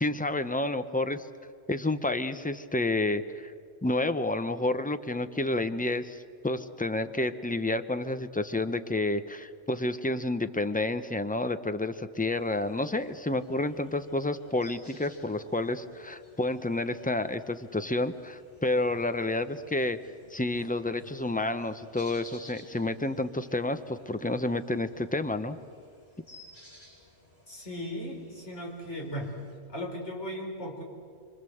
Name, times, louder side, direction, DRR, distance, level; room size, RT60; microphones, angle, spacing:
voice 1, 0.0-1.3 1.7-3.5 3.8-20.0 20.3-25.6, left 2 dB, 10° left, 10 dB, 0.6 m, -30 dB
sound 1, 12.3-29.6, left 1 dB, 40° left, 5.4 m, -56 dB
voice 2, 27.5-29.4 29.7-30.8, equal, 70° left, 0 dB, 4.8 m, -37 dB
25.5 x 25.0 x 7.9 m, 2.1 s
omnidirectional pair, 1.2 m